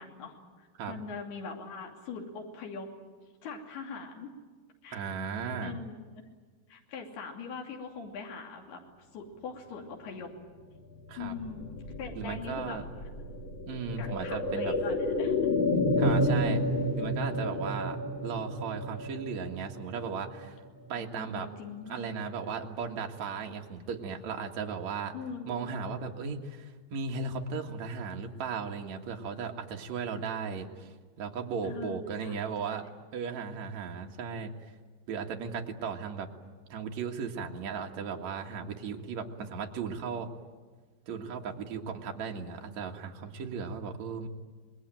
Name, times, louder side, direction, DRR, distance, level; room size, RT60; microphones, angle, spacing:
voice 1, 0.0-2.9 3.4-4.3 4.8-5.1 5.4-6.0 6.7-8.8 9.1-10.3 11.2-12.8 14.0-15.3 21.0-22.1 25.1-25.7 31.6-32.4, left 5 dB, 90° left, 1 dB, 4.8 m, -42 dB
voice 2, 4.9-5.8 11.1-11.3 12.2-12.8 13.7-14.7 16.0-16.6 17.0-18.0 18.2-20.6 20.9-21.5 21.9-25.1 25.5-30.9 31.2-32.8 33.1-34.5 35.1-36.3 36.7-40.3 41.1-44.3, right 5 dB, 55° right, 2 dB, 2.6 m, -36 dB
sound 1, 11.1-20.9 21.2-21.3, left 1 dB, 55° left, 1.4 m, -31 dB
26.5 x 21.0 x 9.1 m, 1.5 s
omnidirectional pair, 4.5 m